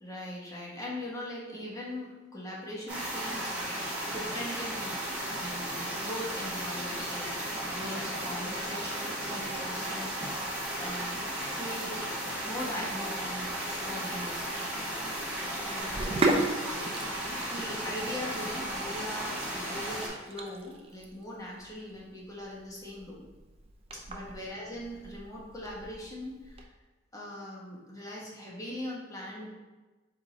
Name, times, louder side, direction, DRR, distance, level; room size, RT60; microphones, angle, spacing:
voice 1, 0.0-10.2 10.8-12.0 12.4-14.5 15.5-15.9 17.4-23.2 23.9-26.6 27.1-29.5, left 1 dB, 20° left, -5 dB, 1.0 m, -41 dB
sound 1, 2.9-20.1, right 1 dB, 5° right, 1.2 m, -35 dB
Sink (filling or washing), 15.8-26.6, right 2 dB, 30° right, 0.4 m, -36 dB
4.7 x 2.7 x 4.0 m, 1.2 s
head